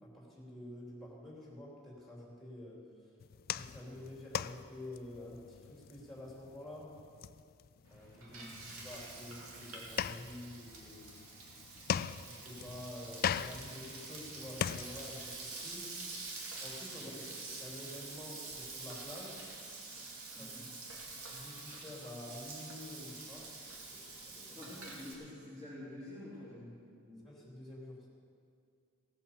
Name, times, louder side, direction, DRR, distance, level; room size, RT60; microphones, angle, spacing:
voice 1, 0.0-2.8 3.5-7.0 7.9-11.1 12.2-16.2 16.6-17.1 17.6-19.4 20.3-20.5 21.3-24.5 27.2-28.1, left 1 dB, ahead, -4 dB, 3.3 m, -49 dB
sound 1, 3.2-15.3, left 8 dB, 45° left, 0.3 m, -41 dB
Frying (food), 7.9-25.1, right 3 dB, 70° right, 2.7 m, -47 dB
voice 2, 8.3-8.7 16.9-17.3 20.3-20.7 24.5-26.8 27.0-27.3, left 1 dB, 20° right, -12 dB, 4.0 m, -49 dB
17.0 x 8.4 x 7.0 m, 2.4 s
head